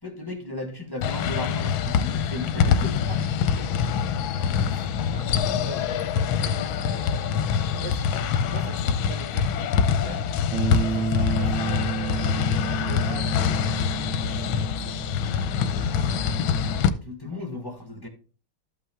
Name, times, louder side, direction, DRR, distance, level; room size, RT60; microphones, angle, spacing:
voice 1, 0.0-3.2 4.6-5.0 7.6-7.7 15.2-18.1, left 2 dB, 15° left, 1.0 m, -37 dB
sound 1, 1.0-16.9, left 7 dB, 70° left, 1.4 m, -25 dB
voice 2, 3.6-4.2 4.5-4.8 5.1-10.3 10.7-12.5 12.8-15.0 17.3-17.6, right 8 dB, 65° right, 1.3 m, -44 dB
Bass guitar, 10.5-16.8, right 5 dB, 80° right, 1.8 m, -31 dB
12.5 x 5.6 x 3.6 m
omnidirectional pair, 2.4 m